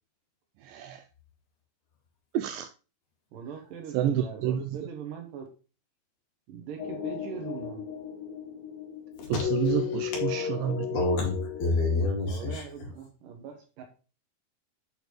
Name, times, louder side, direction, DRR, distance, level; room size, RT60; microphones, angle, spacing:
voice 1, 0.7-1.0 2.3-2.7 3.9-4.6 9.3-10.9, right 10 dB, 90° right, 1.9 m, -29 dB
voice 2, 3.3-5.5 6.5-7.9 12.3-13.8, right 7 dB, 70° right, 2.5 m, -41 dB
sound 1, 6.8-11.9, left 8 dB, 65° left, 3.6 m, -34 dB
voice 3, 9.2-10.1 10.9-12.6, left 3 dB, 80° left, 4.2 m, -29 dB
8.5 x 5.0 x 3.1 m
omnidirectional pair, 4.4 m